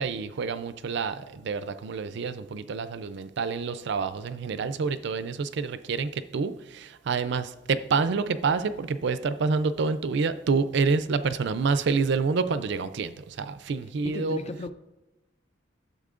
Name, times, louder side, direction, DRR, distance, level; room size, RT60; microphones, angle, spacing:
voice 1, 0.0-14.4, right 4 dB, 65° right, 13 dB, 0.4 m, -28 dB
voice 2, 14.0-14.7, left 2 dB, 35° left, 11 dB, 0.4 m, -35 dB
12.0 x 7.2 x 2.5 m, 1.1 s
head